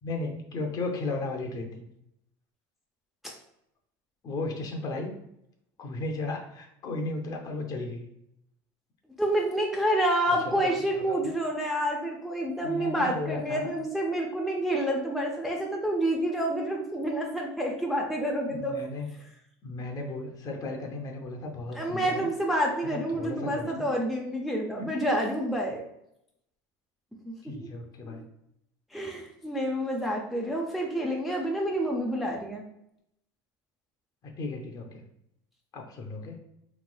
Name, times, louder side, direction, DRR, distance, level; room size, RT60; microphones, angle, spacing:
voice 1, 0.0-1.8 4.2-5.1 5.8-8.0 10.4-11.3 12.6-13.7 18.4-19.1 19.6-22.3 22.8-23.9 24.8-25.0 27.4-28.2 34.2-35.0 35.7-36.4, left 2 dB, 40° left, 3 dB, 0.6 m, -35 dB
voice 2, 9.2-18.8 21.8-25.8 27.3-27.4 27.6-27.7 28.0-28.1 28.9-32.6, right 1 dB, ahead, -1 dB, 0.4 m, -28 dB
3.1 x 2.9 x 2.2 m, 0.79 s
supercardioid pair, 115°, 10 cm